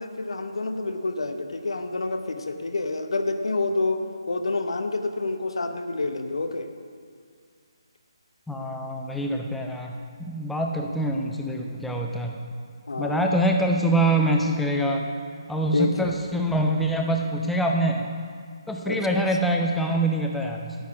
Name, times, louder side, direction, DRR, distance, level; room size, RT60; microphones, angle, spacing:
voice 1, 0.0-6.7 12.9-13.2 15.7-16.1 18.9-19.2, left 3 dB, 70° left, 7 dB, 0.8 m, -28 dB
voice 2, 8.5-12.4 13.0-15.0 15.5-18.1 18.7-20.7, right 1 dB, 5° left, 1 dB, 0.5 m, -25 dB
9.2 x 8.0 x 4.9 m, 2.1 s
figure-of-eight pair, 150°, 3 cm